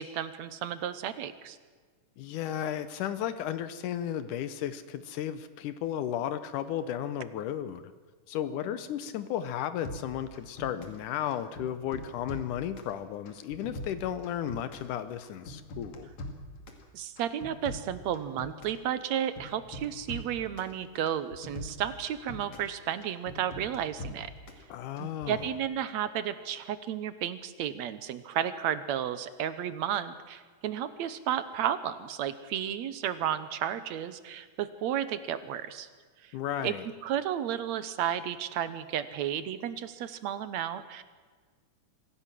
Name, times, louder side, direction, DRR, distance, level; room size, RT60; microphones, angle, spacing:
voice 1, 0.0-1.6 16.9-24.3 25.0-35.9 36.2-36.3 36.6-36.7 37.0-41.0, right 10 dB, 70° right, 13 dB, 2.0 m, -33 dB
voice 2, 2.2-7.9 8.3-16.1 24.7-25.5 36.3-36.9, left 10 dB, 80° left, 13 dB, 2.3 m, -34 dB
sound 1, 9.8-11.0 11.3-12.9 13.3-14.9 15.2-16.8 17.2-18.8 19.1-20.7 21.1-22.7 23.0-24.6 25.0-25.4, left 1 dB, 60° left, 3.6 m, -42 dB
25.0 x 15.5 x 7.6 m, 1.5 s
omnidirectional pair, 3.7 m